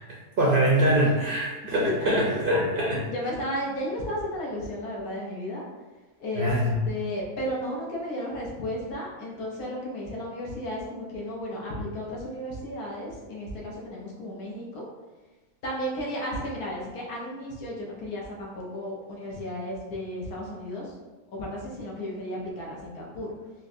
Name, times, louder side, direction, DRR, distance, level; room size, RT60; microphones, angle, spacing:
voice 1, 0.4-3.1 6.4-6.8, right 1 dB, 65° right, -4 dB, 0.5 m, -23 dB
voice 2, 3.1-5.6 6.2-14.8 15.6-20.9 21.3-23.3, equal, 85° left, -3 dB, 1.3 m, -34 dB
4.4 x 2.1 x 2.5 m, 1.2 s
omnidirectional pair, 1.6 m